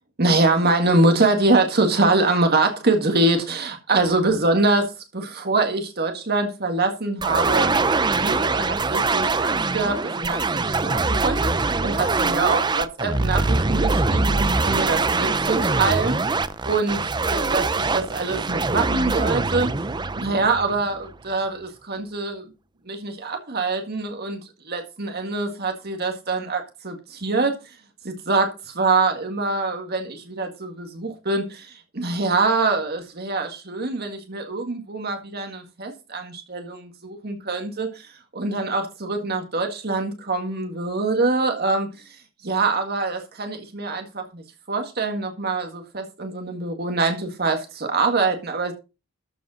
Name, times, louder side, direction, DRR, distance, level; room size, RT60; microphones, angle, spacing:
voice 1, 0.2-7.8 8.1-16.2 16.6-19.7 20.2-22.5 22.9-24.4 24.7-27.8 28.0-48.7, right 3 dB, 50° right, 1.9 m, -24 dB
sound 1, 7.2-21.1, right 3 dB, 20° right, 0.6 m, -23 dB
13.5 x 5.2 x 6.3 m
head